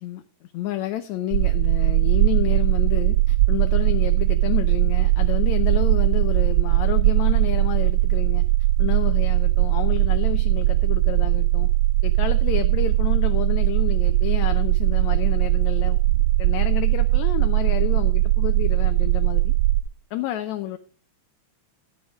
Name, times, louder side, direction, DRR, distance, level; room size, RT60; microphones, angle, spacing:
voice 1, 0.5-8.4 8.8-11.7 12.0-19.5 20.1-20.8, left 13 dB, 75° left, 1.9 m, -30 dB
sound 1, 1.3-19.8, right 17 dB, 80° right, 1.4 m, -20 dB
11.0 x 9.5 x 3.6 m
omnidirectional pair, 3.5 m